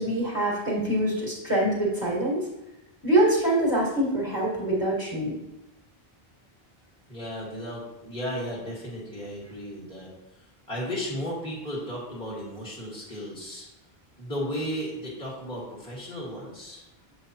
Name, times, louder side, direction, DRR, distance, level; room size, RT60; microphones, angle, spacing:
voice 1, 0.0-2.5 3.0-5.4, right 1 dB, 20° left, -6 dB, 1.6 m, -24 dB
voice 2, 7.1-10.1 10.7-13.6 14.2-16.8, equal, 5° left, -6 dB, 1.5 m, -34 dB
7.7 x 4.9 x 2.9 m, 0.93 s
omnidirectional pair, 1.0 m